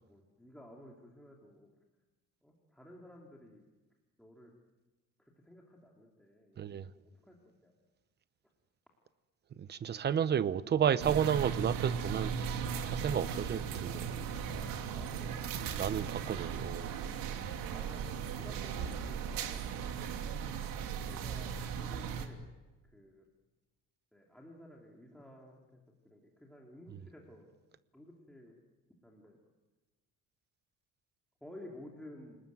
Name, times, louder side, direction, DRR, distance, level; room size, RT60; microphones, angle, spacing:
voice 1, 0.0-1.7 2.4-3.7 4.2-4.5 5.2-7.7 9.9-10.3 14.9-15.5 16.2-16.7 17.3-20.1 21.1-22.5 22.8-23.2 24.1-27.5 27.9-28.6 29.0-29.4 31.4-32.4, left 1 dB, ahead, 2.9 m, -54 dB
voice 2, 9.7-14.0 15.8-16.9, right 8 dB, 30° right, 0.9 m, -32 dB
sound 1, 11.0-22.3, right 7 dB, 85° right, 3.1 m, -37 dB
29.0 x 19.5 x 9.3 m
cardioid pair, 175°, 33 cm